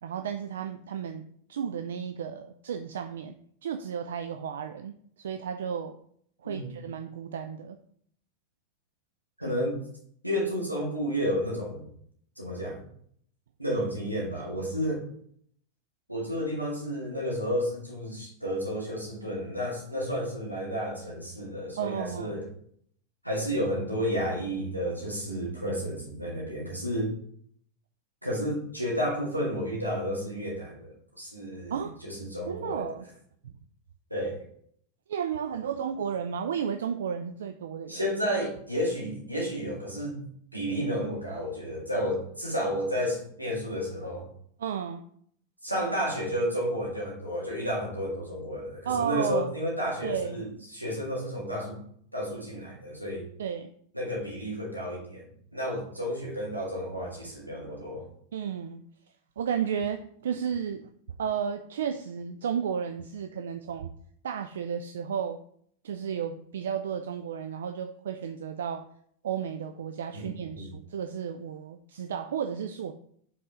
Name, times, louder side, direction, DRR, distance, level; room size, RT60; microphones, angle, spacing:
voice 1, 0.0-3.3 3.6-6.0 6.4-7.8 21.8-22.4 31.7-31.9 32.5-33.1 33.4-33.5 35.1-38.0 44.6-45.0 48.9-49.5 50.0-50.4 53.4-53.7 58.3-58.8 59.4-60.9 61.2-63.9 64.2-65.4 65.8-68.9 69.2-72.9, right 8 dB, 60° right, 8 dB, 0.3 m, -33 dB
voice 2, 6.4-6.8 9.4-9.8 10.2-11.9 12.4-12.8 13.6-15.0 16.1-22.5 23.2-27.1 28.2-32.9 34.1-34.4 37.9-40.2 40.5-44.3 45.6-51.8 52.1-53.3 53.9-58.1 70.1-70.3 70.5-70.7, equal, 90° right, -3 dB, 1.8 m, -31 dB
5.3 x 4.0 x 4.9 m, 0.65 s
figure-of-eight pair, 90°, 0 cm